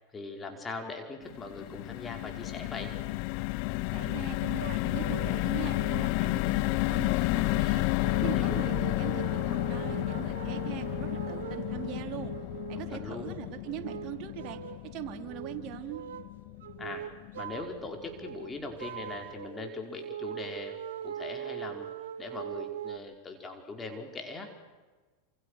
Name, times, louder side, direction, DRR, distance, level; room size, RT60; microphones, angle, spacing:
voice 1, 0.1-2.9 8.2-8.6 12.7-13.4 16.8-17.1 17.4-21.9 22.2-24.5, left 3 dB, 20° left, 4 dB, 5.1 m, -41 dB
sound 1, 1.2-17.5 17.9-18.1 18.3-18.6, left 22 dB, 55° left, 0.8 m, -31 dB
voice 2, 3.9-12.3 12.7-14.6 14.9-16.0, right 12 dB, 50° right, 4 dB, 3.9 m, -41 dB
sound 2, 4.6-5.5 5.7-6.2 7.0-7.1 8.0-13.2 13.6-14.9 15.2-15.6 15.9-16.3 16.6-17.8 18.0-23.0, right 10 dB, 75° right, 1.6 m, -41 dB
28.5 x 28.0 x 6.8 m, 1.3 s
hypercardioid pair, 95°, 0 cm